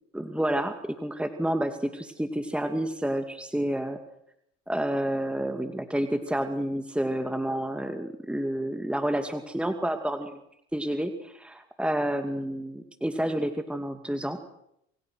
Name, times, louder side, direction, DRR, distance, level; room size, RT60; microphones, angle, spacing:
voice 1, 0.1-4.0 4.7-10.4 10.7-14.4, right 1 dB, 5° right, 7 dB, 2.4 m, -29 dB
27.5 x 25.0 x 6.4 m, 0.77 s
hypercardioid pair, 80°, 36 cm